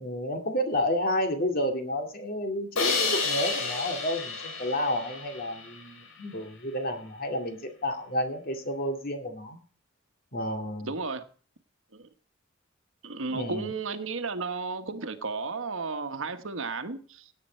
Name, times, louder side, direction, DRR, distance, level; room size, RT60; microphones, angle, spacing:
voice 1, 0.0-9.6 10.3-10.9 13.3-13.7, left 1 dB, 45° left, 5 dB, 2.3 m, -31 dB
Crash cymbal, 2.8-5.8, left 4 dB, 75° left, 4.5 m, -30 dB
voice 2, 10.8-11.2 11.9-12.1 13.0-17.2, right 4 dB, 70° right, 9 dB, 1.3 m, -33 dB
17.0 x 8.9 x 4.5 m, 0.40 s
head